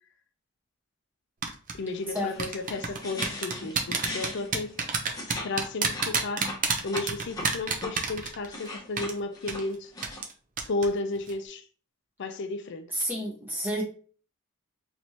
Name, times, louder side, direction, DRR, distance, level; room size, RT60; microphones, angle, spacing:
En Drink Tapping, 1.4-1.7 2.4-8.7 9.0-9.1 9.5-9.6 10.0-10.3 10.6-10.9 11.2-11.3, right 5 dB, 40° right, 0.7 m, -28 dB
voice 1, 1.7-4.8 5.4-6.5 6.8-9.9 10.7-11.7 12.2-12.9, left 3 dB, 55° left, 0.5 m, -33 dB
sound 1, 1.9-5.5 5.8-7.9 8.3-10.2, left 1 dB, 15° left, 1.1 m, -39 dB
voice 2, 12.9-13.8, equal, 10° right, 1.2 m, -30 dB
4.4 x 3.1 x 2.8 m
head